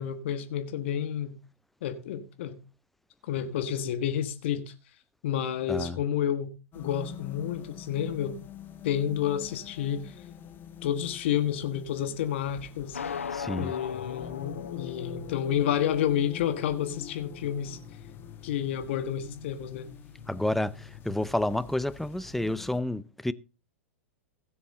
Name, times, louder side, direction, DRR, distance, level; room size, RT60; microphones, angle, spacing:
voice 1, 0.0-1.4 1.8-2.6 3.3-4.7 5.2-8.4 8.8-10.2 10.8-13.0 13.6-17.8 18.4-19.9, left 9 dB, 60° left, 1.4 m, -30 dB
sound 1, 6.7-22.8, left 8 dB, 30° left, 1.6 m, -45 dB
sound 2, 12.9-16.9, left 7 dB, 80° left, 0.9 m, -39 dB
voice 2, 13.3-13.7 20.3-23.3, left 1 dB, 5° left, 0.5 m, -30 dB
17.0 x 7.1 x 3.9 m
figure-of-eight pair, 100°, 7 cm